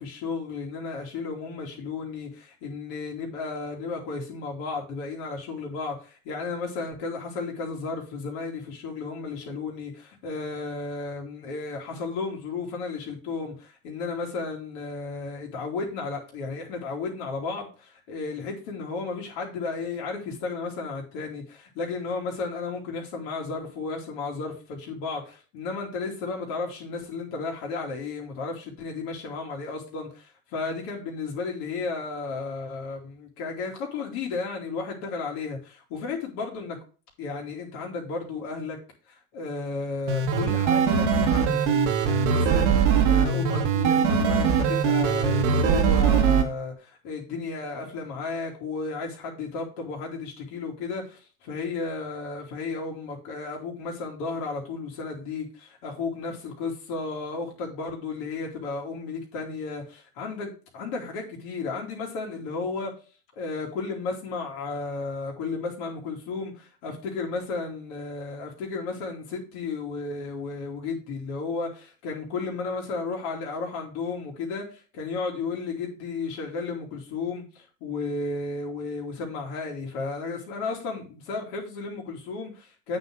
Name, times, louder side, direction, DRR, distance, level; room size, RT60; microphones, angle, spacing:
voice 1, 0.0-36.8 37.2-38.8 39.1-62.9 63.4-83.0, left 4 dB, 75° left, 2.9 m, -33 dB
sound 1, 40.1-46.4, right 6 dB, 90° right, 1.6 m, -21 dB
8.7 x 4.1 x 6.3 m
supercardioid pair, 85°, 35 cm